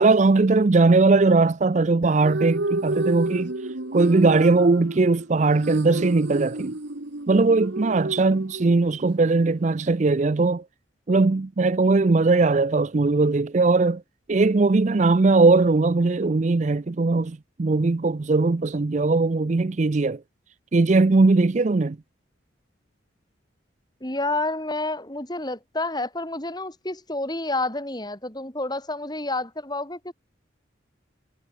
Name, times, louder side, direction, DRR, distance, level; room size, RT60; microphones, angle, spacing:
voice 1, 0.0-3.5 3.9-6.7 7.3-10.6 11.1-14.0 14.3-20.2 20.7-22.0, right 3 dB, 35° right, 0.5 m, -19 dB
sound 1, 2.0-9.1, right 2 dB, 70° right, 1.8 m, -30 dB
voice 2, 24.0-30.1, left 2 dB, 20° left, 3.4 m, -29 dB
head